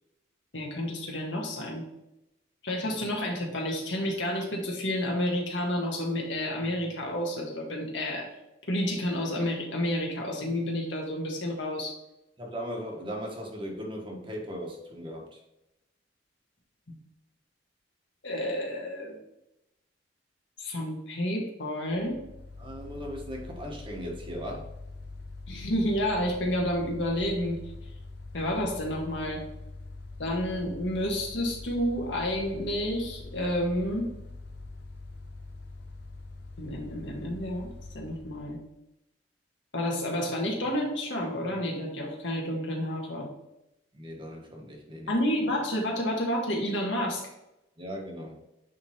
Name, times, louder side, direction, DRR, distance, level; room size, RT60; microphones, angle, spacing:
voice 1, 0.5-1.8 2.6-8.3 8.7-12.0 18.2-19.2 20.6-22.2 25.5-27.6 28.3-29.5 30.2-34.1 36.6-38.6 39.7-43.3 45.1-47.2, left 1 dB, 75° left, 0 dB, 1.7 m, -30 dB
voice 2, 12.4-15.4 22.6-24.7 43.9-45.1 47.8-48.4, equal, 25° right, 0 dB, 1.3 m, -38 dB
Mechanical fan, 21.9-38.7, left 3 dB, 60° left, 0.7 m, -44 dB
9.4 x 3.6 x 2.9 m, 0.89 s
head